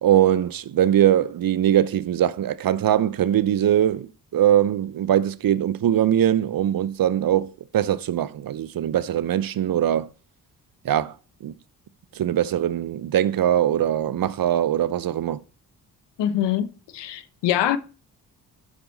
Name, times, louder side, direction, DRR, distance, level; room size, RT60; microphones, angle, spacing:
voice 1, 0.0-10.1 10.8-11.1 11.4-11.5 12.1-15.4, right 11 dB, 55° right, 0.8 m, -21 dB
voice 2, 16.2-16.7 16.9-17.8, left 11 dB, 75° left, 0.9 m, -23 dB
11.5 x 6.0 x 4.1 m
hypercardioid pair, 45°, 42 cm